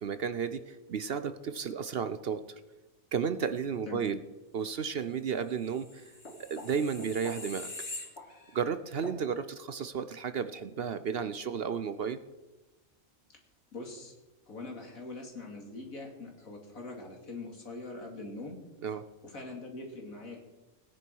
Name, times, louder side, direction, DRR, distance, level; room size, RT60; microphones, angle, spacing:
voice 1, 0.0-2.4 3.1-4.2 4.5-6.1 6.5-7.7 8.5-12.2 18.8-19.0, right 6 dB, 55° right, 12 dB, 0.8 m, -33 dB
sound 1, 5.7-8.6 9.0-9.2, left 2 dB, 50° left, 2.9 m, -43 dB
voice 2, 13.7-14.1 14.5-18.6 19.2-20.4, left 2 dB, 85° left, 1 dB, 3.0 m, -43 dB
18.5 x 10.0 x 4.7 m, 1.1 s
omnidirectional pair, 1.4 m